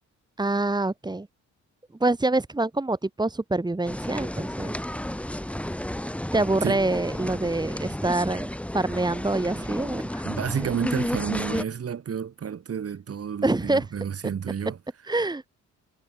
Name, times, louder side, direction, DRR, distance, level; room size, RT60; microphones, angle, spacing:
voice 1, 0.4-1.3 2.0-4.7 6.3-8.5 8.7-10.2 13.4-13.8 15.1-15.4, right 2 dB, 15° right, 2.8 m, -25 dB
sound 1, 3.9-11.6, left 1 dB, 5° left, 2.7 m, -32 dB
voice 2, 10.2-14.8, right 7 dB, 50° right, 7.9 m, -30 dB
cardioid pair, 90°, 30 cm